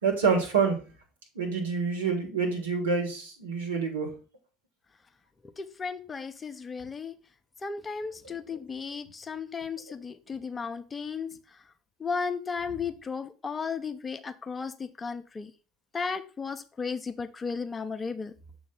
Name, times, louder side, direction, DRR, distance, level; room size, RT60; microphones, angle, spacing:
voice 1, 0.0-0.8 1.4-4.1 8.2-8.4, right 5 dB, 80° right, 1.8 m, -27 dB
voice 2, 5.4-7.2 7.6-11.3 12.0-15.5 15.9-18.3, left 5 dB, 25° left, 0.6 m, -35 dB
7.0 x 3.1 x 5.8 m
hypercardioid pair, 70°, 0 cm